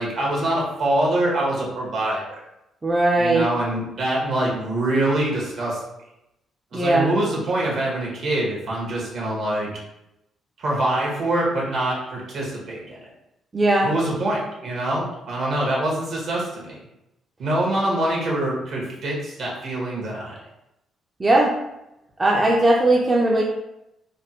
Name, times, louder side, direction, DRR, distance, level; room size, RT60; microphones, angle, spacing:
voice 1, 0.0-2.4 3.2-5.8 6.7-9.7 10.6-13.0 13.8-16.7 17.4-20.4, right 1 dB, 65° right, -3 dB, 1.2 m, -24 dB
voice 2, 2.8-3.5 6.7-7.1 13.5-13.9 21.2-21.6 22.2-23.4, right 2 dB, 25° right, -2 dB, 0.4 m, -18 dB
3.3 x 2.1 x 2.7 m, 0.87 s
cardioid pair, 90°, 0 cm